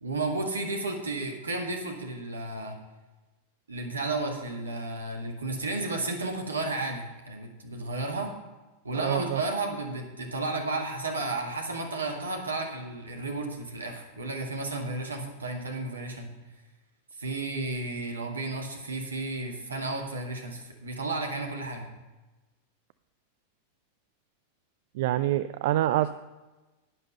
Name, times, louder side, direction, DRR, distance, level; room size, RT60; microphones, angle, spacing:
voice 1, 0.0-2.8 3.7-8.3 8.8-16.3 17.2-21.9, right 2 dB, 75° right, 2 dB, 2.0 m, -33 dB
voice 2, 8.9-9.4 24.9-26.1, right 14 dB, 55° right, 13 dB, 0.4 m, -26 dB
11.0 x 9.8 x 5.4 m, 1.1 s
figure-of-eight pair, 90°, 0 cm